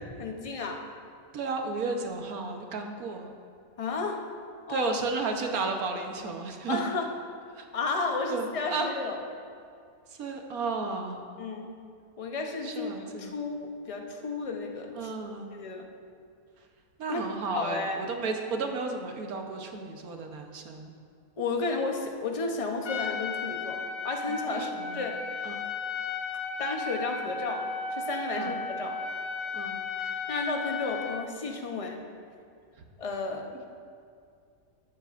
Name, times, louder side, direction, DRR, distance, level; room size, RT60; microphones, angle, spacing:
voice 1, 0.2-0.8 3.8-4.2 4.7-4.9 6.7-7.1 7.7-9.2 11.4-11.7 12.2-15.1 15.5-15.9 17.1-17.2 17.5-18.1 21.4-25.2 26.6-29.0 30.0-32.0 33.0-33.5, left 3 dB, 30° left, 3 dB, 0.8 m, -33 dB
voice 2, 1.3-3.3 4.7-6.8 7.6-7.7 8.3-8.9 10.1-11.2 12.6-13.3 14.9-15.5 17.0-20.9 24.3-25.0 25.4-25.6 28.3-28.6 29.5-29.8, right 4 dB, 85° right, 3 dB, 1.5 m, -33 dB
Trumpet, 22.8-31.3, left 4 dB, 75° left, 1.1 m, -34 dB
13.5 x 11.5 x 2.5 m, 2.3 s
omnidirectional pair, 1.5 m